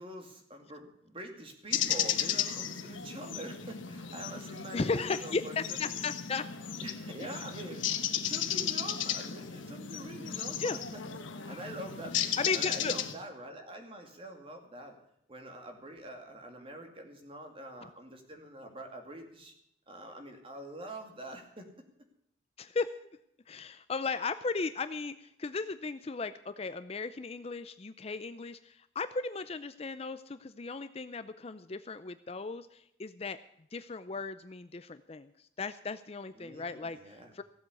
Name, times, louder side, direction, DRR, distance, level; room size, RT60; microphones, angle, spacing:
voice 1, 0.0-6.0 6.8-11.0 11.3-15.0 15.3-19.5 19.9-21.7 36.4-37.3, right 1 dB, 30° right, 4 dB, 2.4 m, -45 dB
sound 1, 1.7-13.1, left 9 dB, 85° left, 1.2 m, -35 dB
voice 2, 4.7-6.5 7.2-7.3 10.6-10.8 12.4-12.9 22.6-23.1 23.5-33.4 33.7-35.3 35.6-37.4, left 4 dB, 30° left, 12 dB, 0.5 m, -36 dB
16.0 x 7.8 x 8.3 m, 0.75 s
head